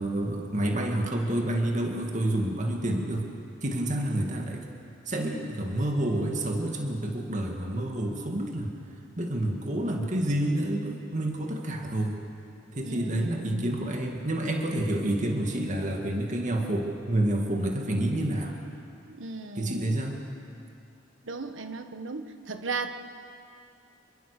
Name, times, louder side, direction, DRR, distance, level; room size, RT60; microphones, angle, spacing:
voice 1, 0.0-3.3 3.6-4.6 5.1-8.7 9.2-12.2 12.7-18.6 19.6-20.2, right 1 dB, 40° right, 2 dB, 2.1 m, -28 dB
voice 2, 12.8-13.7 19.1-19.9 21.2-22.9, right 3 dB, 90° right, 8 dB, 1.3 m, -36 dB
26.5 x 22.0 x 6.7 m, 2.7 s
head